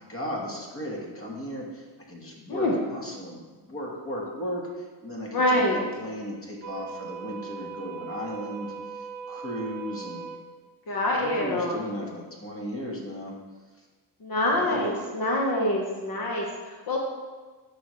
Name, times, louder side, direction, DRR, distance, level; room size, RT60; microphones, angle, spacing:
voice 1, 0.0-10.3 11.1-13.3 14.5-14.9, equal, 30° left, -2 dB, 1.6 m, -36 dB
voice 2, 5.3-5.8 10.9-11.8 14.2-17.0, left 1 dB, 50° left, -1 dB, 1.3 m, -25 dB
sound 1, 6.6-10.4, right 6 dB, 40° right, 0.7 m, -39 dB
11.0 x 5.1 x 3.2 m, 1.3 s
cardioid pair, 95°, 46 cm